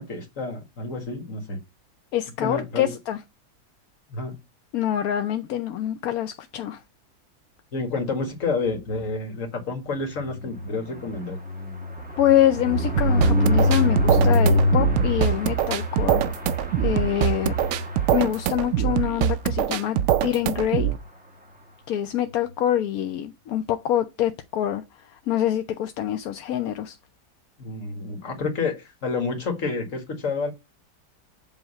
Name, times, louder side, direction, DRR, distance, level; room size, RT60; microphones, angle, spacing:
voice 1, 0.0-1.6 2.4-2.9 4.1-4.4 7.7-11.4 27.6-30.5, left 3 dB, 45° left, 2.0 m, -29 dB
voice 2, 2.1-3.2 4.7-6.8 12.2-16.2 16.8-17.5 18.1-20.9 21.9-27.0, left 11 dB, 65° left, 1.0 m, -25 dB
sound 1, 10.1-19.0 19.4-19.6 19.8-19.9 20.2-20.5, left 1 dB, 5° right, 1.5 m, -25 dB
sound 2, 13.0-21.0, right 11 dB, 80° right, 0.7 m, -24 dB
7.8 x 2.9 x 5.5 m
omnidirectional pair, 1.9 m